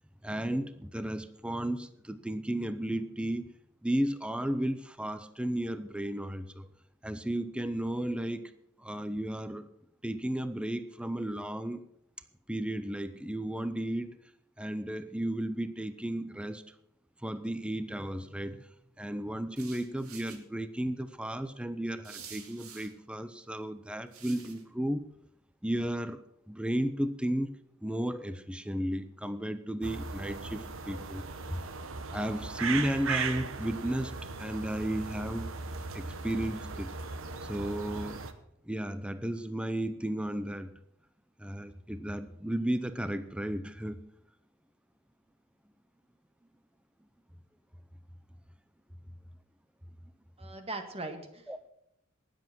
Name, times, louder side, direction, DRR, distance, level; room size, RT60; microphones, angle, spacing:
voice 1, 0.2-3.4 3.8-6.7 7.0-8.5 8.8-9.7 10.0-11.8 12.5-14.1 14.6-16.6 17.2-18.6 19.0-25.0 25.6-27.6 27.8-31.6 32.1-35.5 35.9-36.9 37.5-38.2 38.7-40.7 41.4-44.0 51.5-51.6, right 1 dB, 5° right, 12 dB, 0.6 m, -34 dB
sound 1, 19.6-20.4 22.0-22.9 24.1-24.6, right 7 dB, 80° right, 2.2 m, -48 dB
sound 2, 29.8-38.3, right 4 dB, 65° right, 1.1 m, -38 dB
voice 2, 50.4-51.7, right 2 dB, 30° right, 6 dB, 1.8 m, -40 dB
19.0 x 7.8 x 6.0 m, 0.75 s
head